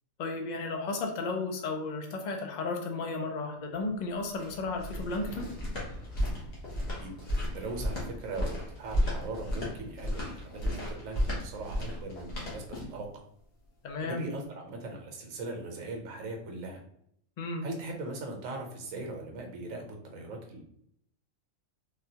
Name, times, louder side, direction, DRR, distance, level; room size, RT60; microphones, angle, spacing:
voice 1, 0.2-5.5 13.8-14.2 17.4-17.6, left 3 dB, 90° left, 3 dB, 0.3 m, -34 dB
sound 1, 3.6-12.8, equal, 25° right, 0.4 m, -49 dB
sound 2, 4.2-13.1, equal, 50° left, 1.2 m, -33 dB
voice 2, 7.5-12.6 12.9-13.1 14.0-16.8 17.6-20.6, right 2 dB, 75° right, 2 dB, 1.1 m, -39 dB
3.6 x 2.3 x 2.7 m, 0.69 s
omnidirectional pair, 1.4 m